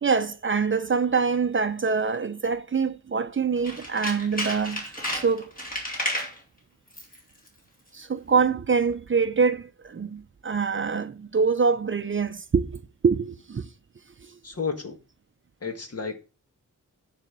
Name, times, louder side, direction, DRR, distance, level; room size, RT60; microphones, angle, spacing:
voice 1, 0.0-5.4 7.9-13.7 14.2-14.4, right 5 dB, 40° right, 0.5 m, -25 dB
Tools, 3.6-6.4 6.9-7.2 7.5-7.6, equal, 25° left, 2.8 m, -32 dB
voice 2, 14.4-15.0 15.6-16.1, left 5 dB, 45° left, 1.6 m, -31 dB
9.4 x 4.2 x 6.5 m
wide cardioid pair, 125°, 33 cm